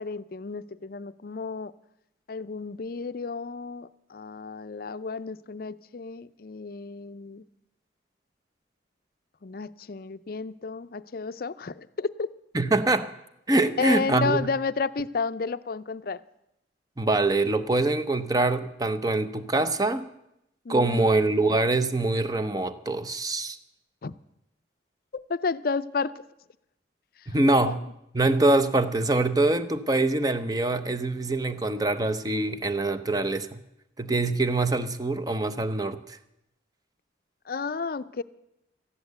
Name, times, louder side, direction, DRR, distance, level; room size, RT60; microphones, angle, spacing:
voice 1, 0.0-1.7 2.3-7.4 9.4-12.3 13.8-16.2 20.6-21.1 24.0-24.1 25.1-26.1 27.2-27.3 27.6-27.8 37.5-38.2, left 4 dB, 55° left, 15 dB, 0.5 m, -32 dB
voice 2, 12.5-13.1 13.5-14.4 17.0-20.1 20.7-23.6 27.3-27.8 28.1-33.6 34.0-36.2, right 2 dB, 20° right, 12 dB, 0.7 m, -24 dB
14.0 x 10.5 x 7.9 m, 0.84 s
head